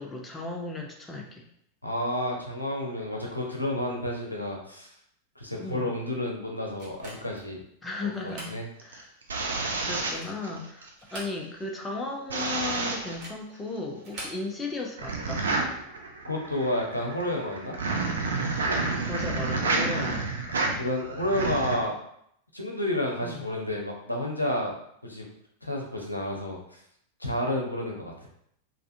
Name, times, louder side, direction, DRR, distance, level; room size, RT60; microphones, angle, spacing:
voice 1, 0.0-1.4 5.6-5.9 7.8-8.5 8.8-9.1 9.9-15.5 19.0-20.4 23.2-23.5, left 3 dB, 15° left, 0 dB, 0.5 m, -35 dB
voice 2, 1.8-4.9 5.4-7.6 8.2-8.7 16.2-17.8 20.8-21.9 22.5-24.7 25.0-25.2 25.6-26.8 27.2-28.1, left 1 dB, 85° left, -1 dB, 0.6 m, -30 dB
sound 1, 6.8-7.5 8.1-8.6 9.0-9.1 9.8-10.4 10.9-11.7 12.0-12.1 13.0-13.5 14.0-14.4, right 1 dB, 40° right, 1.1 m, -43 dB
sound 2, 8.8-10.9 12.3-13.2 15.0-21.8, right 3 dB, 70° right, 0.5 m, -29 dB
3.3 x 2.5 x 2.6 m, 0.71 s
figure-of-eight pair, 90°, 0 cm